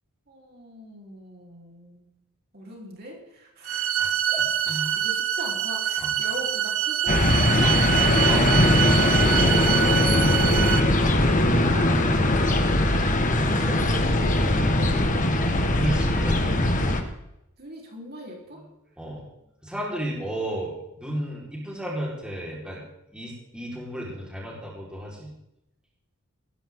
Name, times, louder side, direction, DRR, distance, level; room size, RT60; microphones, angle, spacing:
voice 1, 0.3-2.1 2.5-4.0 5.0-10.7 11.6-13.2 13.6-15.6 17.6-18.6, right 1 dB, 45° right, -1 dB, 4.1 m, -41 dB
sound 1, 3.7-10.8, right 10 dB, 70° right, 1.4 m, -25 dB
voice 2, 4.0-5.0 6.0-6.1 7.6-7.8 8.3-8.5 11.1-11.3 15.7-16.7 19.0-19.3 19.6-22.8 23.1-25.3, right 1 dB, 5° right, -4 dB, 4.5 m, -33 dB
sound 2, 7.1-17.0, left 1 dB, 35° left, 1.7 m, -21 dB
18.0 x 15.5 x 3.8 m, 0.85 s
head